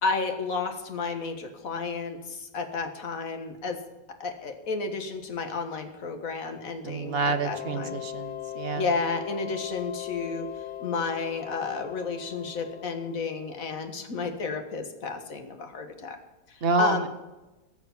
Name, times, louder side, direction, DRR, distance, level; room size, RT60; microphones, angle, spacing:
voice 1, 0.0-3.8 4.2-7.9 8.8-10.5 10.8-16.2 16.5-17.1, left 4 dB, 50° left, 6 dB, 1.9 m, -32 dB
voice 2, 6.8-8.9 16.6-17.1, right 4 dB, 45° right, 9 dB, 0.9 m, -28 dB
sound 1, 7.1-13.7, left 12 dB, 75° left, 0.6 m, -39 dB
17.5 x 6.8 x 7.2 m, 1.1 s
omnidirectional pair, 1.9 m